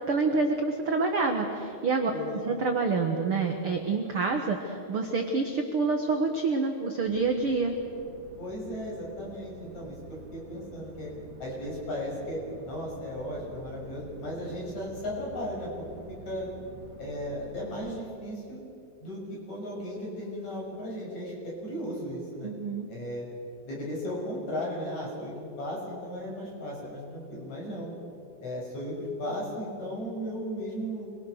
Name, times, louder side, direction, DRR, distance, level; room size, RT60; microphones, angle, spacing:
voice 1, 0.1-7.7 22.4-22.9, right 4 dB, 65° right, 3 dB, 1.4 m, -27 dB
sound 1, 7.0-18.0, right 5 dB, 80° right, 3.9 m, -48 dB
voice 2, 8.4-11.1 11.4-15.7 16.2-16.5 17.0-18.6 19.0-22.5 22.9-23.2 23.6-27.9 28.4-28.9 29.2-31.1, equal, 45° left, -3 dB, 7.8 m, -36 dB
27.0 x 22.0 x 6.7 m, 2.6 s
omnidirectional pair, 4.7 m